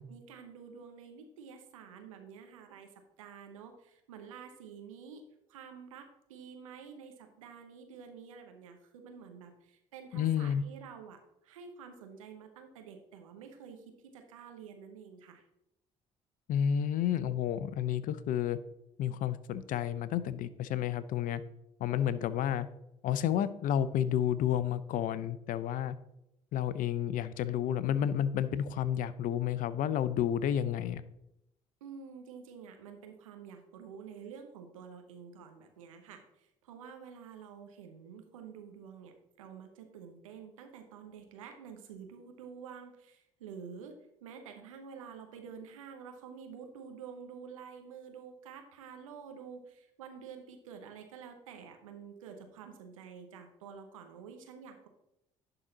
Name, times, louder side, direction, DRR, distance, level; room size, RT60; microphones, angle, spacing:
voice 1, 0.1-2.9 3.2-15.4 31.8-54.9, right 6 dB, 85° right, 5 dB, 0.9 m, -49 dB
voice 2, 10.1-10.6 16.5-18.6 19.0-21.4 21.8-22.7 23.0-26.0 26.5-31.0, left 10 dB, 55° left, 15 dB, 0.5 m, -31 dB
11.0 x 3.9 x 4.0 m, 0.84 s
hypercardioid pair, 55°, 17 cm